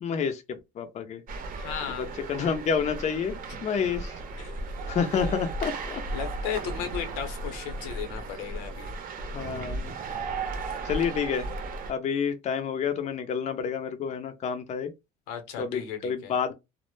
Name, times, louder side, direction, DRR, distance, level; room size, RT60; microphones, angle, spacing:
voice 1, 0.0-1.2 1.9-3.4 3.6-4.1 4.9-6.0 9.3-10.0 10.8-11.5 11.9-14.9 15.6-16.5, left 6 dB, 35° left, 0.5 m, -29 dB
sound 1, 1.3-11.9, right 3 dB, 45° right, 0.7 m, -35 dB
voice 2, 1.6-2.1 5.2-5.3 6.1-8.9 15.3-16.3, left 8 dB, 85° left, 0.8 m, -35 dB
2.1 x 2.0 x 3.0 m
supercardioid pair, 95°, 20 cm